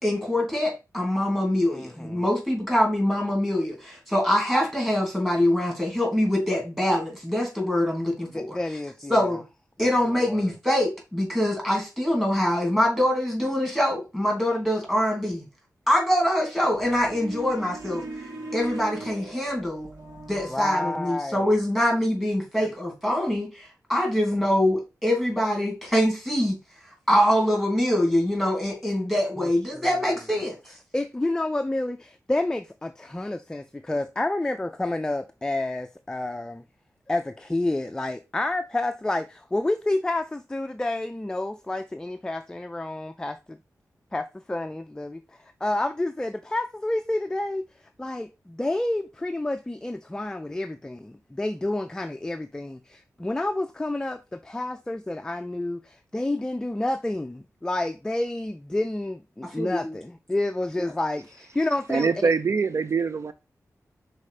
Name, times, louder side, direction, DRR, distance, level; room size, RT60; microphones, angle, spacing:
voice 1, 0.0-8.6 9.1-9.4 9.8-15.4 15.9-18.1 18.5-19.9 20.3-26.6 27.1-30.6 59.6-59.9 60.8-60.9, left 1 dB, 5° right, 2.9 m, -24 dB
voice 2, 1.7-2.2 8.3-9.3 9.8-10.5 20.5-21.5 22.6-22.7 29.4-29.9 30.9-36.6 37.1-43.6 44.1-47.7 48.0-62.3, left 2 dB, 10° left, 0.4 m, -29 dB
sound 1, 16.7-20.7, right 2 dB, 85° right, 2.3 m, -39 dB
voice 3, 61.9-63.3, right 5 dB, 50° right, 0.4 m, -23 dB
5.5 x 4.2 x 4.9 m
wide cardioid pair, 125°, 6 cm